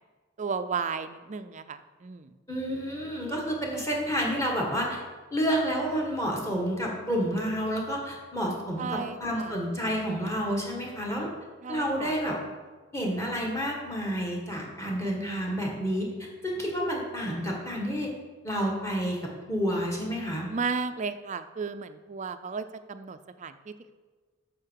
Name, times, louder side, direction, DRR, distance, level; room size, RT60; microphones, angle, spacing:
voice 1, 0.4-2.3 8.8-9.5 11.6-12.2 20.5-23.9, right 5 dB, 35° right, 11 dB, 0.4 m, -34 dB
voice 2, 2.5-5.0 5.3-11.3 11.7-12.4 12.9-18.1 18.4-19.2 19.5-20.5, equal, 15° left, -1 dB, 1.7 m, -29 dB
9.8 x 6.6 x 4.7 m, 1.4 s
head